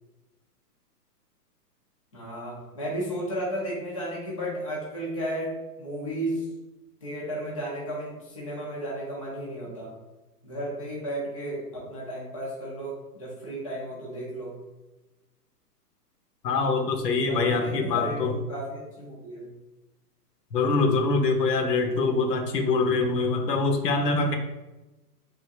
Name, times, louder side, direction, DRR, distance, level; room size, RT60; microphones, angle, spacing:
voice 1, 2.1-6.5 7.0-10.0 10.4-14.6 17.3-18.2 18.5-19.5, right 1 dB, 25° left, -5 dB, 0.4 m, -34 dB
voice 2, 16.4-18.3 20.5-24.4, left 3 dB, 80° left, 4 dB, 0.9 m, -24 dB
3.6 x 2.5 x 4.0 m, 1.1 s
hypercardioid pair, 165°, 48 cm